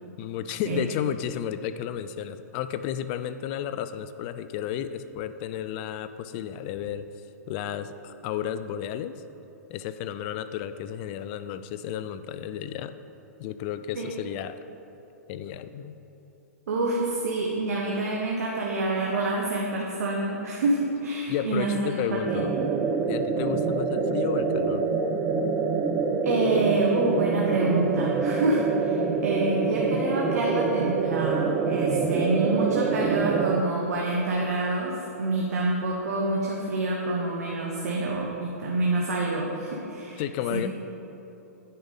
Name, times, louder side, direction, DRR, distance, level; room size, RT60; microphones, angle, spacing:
voice 1, 0.2-7.1 7.5-9.2 9.7-12.9 13.4-14.6 15.3-16.0 21.3-22.5 23.1-24.9 40.2-40.7, left 10 dB, 40° left, 12 dB, 0.4 m, -32 dB
voice 2, 16.7-22.7 26.2-40.2 40.5-40.7, right 2 dB, 70° right, -2 dB, 1.0 m, -27 dB
sound 1, 22.3-33.6, right 5 dB, 20° right, 0.4 m, -26 dB
9.4 x 5.1 x 4.1 m, 3.0 s
hypercardioid pair, 125°, 9 cm